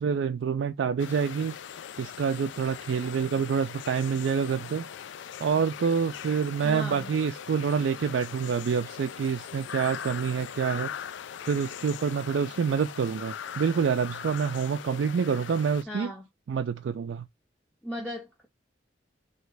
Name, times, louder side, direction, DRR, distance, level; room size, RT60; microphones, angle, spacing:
voice 1, 0.0-1.6 2.0-4.8 5.4-10.9 11.5-16.1 16.5-17.3, right 6 dB, 70° right, 0.3 m, -27 dB
sound 1, 1.0-15.8, left 8 dB, 70° left, 0.3 m, -40 dB
voice 2, 6.6-7.1 15.9-16.2 17.8-18.5, equal, 5° left, 0.6 m, -36 dB
3.2 x 2.8 x 4.6 m
head